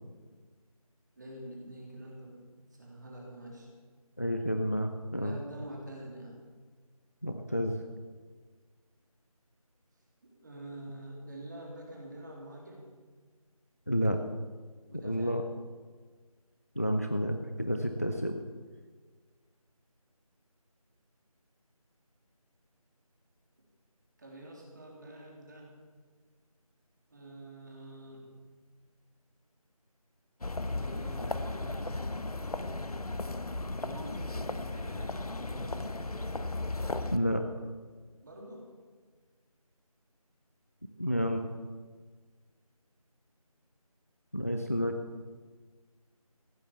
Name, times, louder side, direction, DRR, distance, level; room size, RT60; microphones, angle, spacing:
voice 1, 1.2-3.7 5.1-6.4 10.4-12.9 14.9-15.4 24.2-25.8 27.1-28.3 30.7-32.1 33.5-35.1 35.4-36.0 38.2-38.7, right 1 dB, 30° right, -1 dB, 3.4 m, -46 dB
voice 2, 4.2-5.4 7.2-7.8 13.9-14.2 14.9-15.4 16.8-18.4 37.1-37.4 41.0-41.5 44.3-45.0, equal, 25° left, 6 dB, 0.6 m, -30 dB
sound 1, 30.4-37.2, left 2 dB, 75° left, 1.2 m, -35 dB
15.5 x 10.5 x 7.0 m, 1.5 s
figure-of-eight pair, 175°, 19 cm